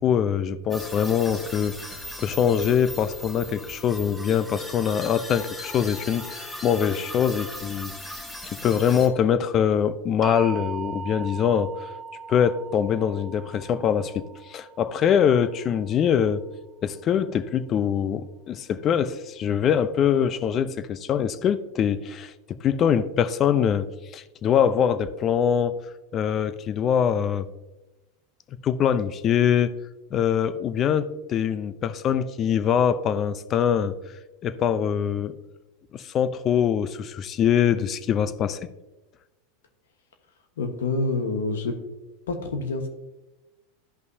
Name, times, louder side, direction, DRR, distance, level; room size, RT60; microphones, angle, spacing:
voice 1, 0.0-7.9 8.6-11.7 12.3-16.4 16.8-23.9 24.1-25.7 26.1-27.5 28.6-29.7 30.1-34.0 34.4-35.4 35.9-38.6, left 8 dB, 40° left, 13 dB, 0.6 m, -23 dB
sound 1, 0.7-9.1, left 1 dB, 5° left, 1.4 m, -38 dB
sound 2, 10.2-16.2, right 5 dB, 30° right, 0.3 m, -39 dB
voice 2, 40.6-41.8 42.3-42.9, left 3 dB, 85° left, 5 dB, 1.2 m, -27 dB
12.5 x 5.4 x 2.7 m, 1.0 s
hypercardioid pair, 105°, 0 cm